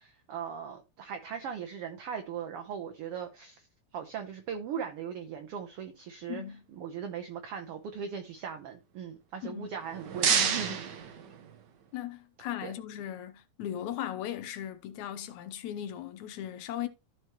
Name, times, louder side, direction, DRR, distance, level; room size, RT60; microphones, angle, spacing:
voice 1, 0.0-3.7 3.9-6.4 6.8-10.8 12.6-12.7, right 7 dB, 65° right, 1.6 m, -39 dB
voice 2, 6.3-6.6 9.4-9.7 10.3-10.8 11.9-16.9, left 11 dB, 75° left, 2.1 m, -38 dB
sound 1, 9.7-11.9, right 7 dB, 85° right, 0.9 m, -30 dB
14.0 x 4.8 x 3.0 m
omnidirectional pair, 3.5 m